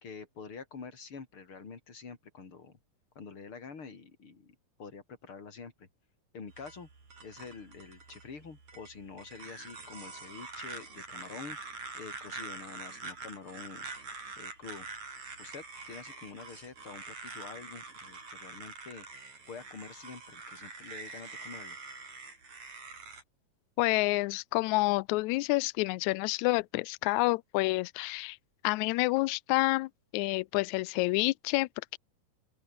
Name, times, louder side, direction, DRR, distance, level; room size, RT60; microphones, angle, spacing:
voice 1, 0.0-2.8 3.2-5.9 6.3-6.9 7.2-11.6 12.0-13.9 14.4-14.9 15.4-19.1 19.5-21.8, left 5 dB, 40° left, 4.2 m, -47 dB
sound 1, 6.5-23.2, right 4 dB, 55° right, 7.3 m, -45 dB
voice 2, 23.8-28.4 28.6-32.0, left 22 dB, 90° left, 1.6 m, -29 dB
open air
omnidirectional pair, 3.9 m